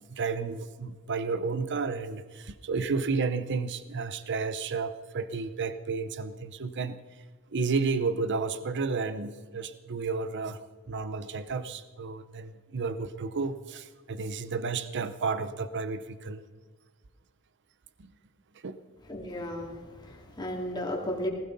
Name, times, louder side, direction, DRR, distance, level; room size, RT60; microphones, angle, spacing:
voice 1, 0.0-7.0 7.5-10.6 10.9-16.4 18.6-18.8, right 4 dB, 55° right, 13 dB, 0.7 m, -32 dB
voice 2, 19.1-21.3, left 1 dB, 20° left, -1 dB, 2.7 m, -34 dB
19.0 x 16.5 x 4.0 m, 1.4 s
head